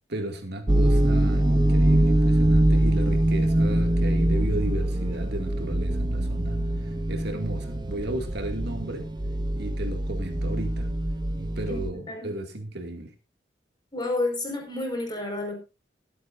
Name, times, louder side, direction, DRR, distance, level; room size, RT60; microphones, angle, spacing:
voice 1, 0.1-9.1 9.6-10.9 11.4-13.1, right 1 dB, 60° right, 4 dB, 2.3 m, -34 dB
sound 1, 0.7-11.9, right 1 dB, 25° right, 0.6 m, -23 dB
voice 2, 13.9-15.6, left 2 dB, 25° left, 1 dB, 5.0 m, -30 dB
23.0 x 8.6 x 2.6 m, 0.26 s
head